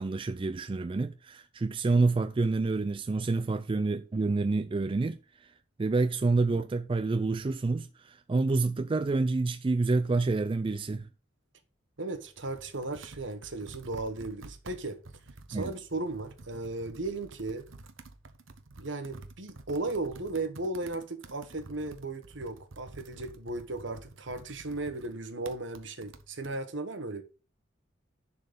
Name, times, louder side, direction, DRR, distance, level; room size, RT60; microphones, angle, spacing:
voice 1, 0.0-5.5 5.8-11.1 15.5-15.7, right 3 dB, 25° right, 0.3 m, -28 dB
voice 2, 12.0-15.0 15.5-17.7 18.8-27.2, right 2 dB, 65° right, 1.3 m, -36 dB
Computer keyboard, 12.0-26.6, right 2 dB, 90° right, 1.0 m, -50 dB
10.5 x 4.4 x 5.2 m
head